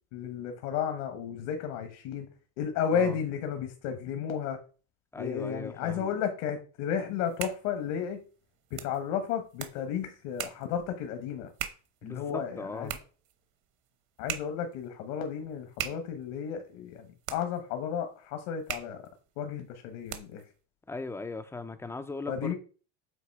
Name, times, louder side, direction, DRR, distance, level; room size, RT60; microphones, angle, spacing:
voice 1, 0.1-2.3 2.6-4.6 5.1-8.2 8.7-11.5 12.0-13.0 14.2-19.0 19.4-20.4 22.3-22.5, left 8 dB, 65° left, 1.2 m, -33 dB
voice 2, 5.1-6.1 12.0-12.9 20.9-22.5, left 3 dB, 5° left, 0.3 m, -38 dB
sound 1, 7.1-20.5, right 11 dB, 50° right, 1.0 m, -43 dB
8.0 x 2.7 x 4.6 m
supercardioid pair, 125°, 37 cm